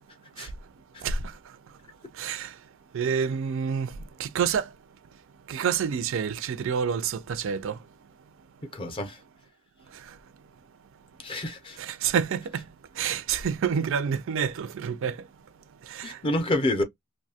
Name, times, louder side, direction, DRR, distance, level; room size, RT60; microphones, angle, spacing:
voice 1, 1.0-1.4 2.1-2.6 2.9-4.7 5.5-7.8 9.9-10.2 11.8-12.7 12.9-15.3 15.8-16.2, right 7 dB, 65° right, 0.4 m, -28 dB
voice 2, 8.7-9.2 11.2-11.8 16.0-16.8, left 1 dB, 25° left, 0.5 m, -28 dB
2.6 x 2.1 x 2.7 m
head